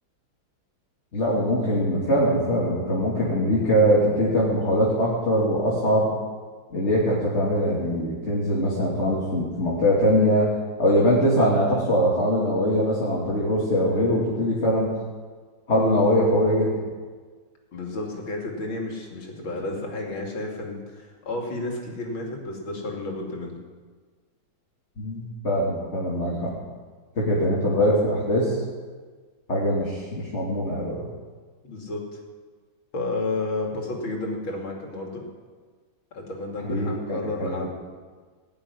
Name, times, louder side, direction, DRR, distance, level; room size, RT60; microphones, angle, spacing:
voice 1, 1.1-6.1 6.7-10.5 10.8-14.9 15.7-16.8 25.0-26.6 27.2-28.6 29.5-31.1 36.7-37.7, equal, 35° left, -5 dB, 2.7 m, -22 dB
voice 2, 17.7-23.6 31.6-32.0 32.9-35.2 36.1-37.7, left 2 dB, 75° left, 0 dB, 3.3 m, -31 dB
18.0 x 7.1 x 9.8 m, 1.5 s
omnidirectional pair, 2.2 m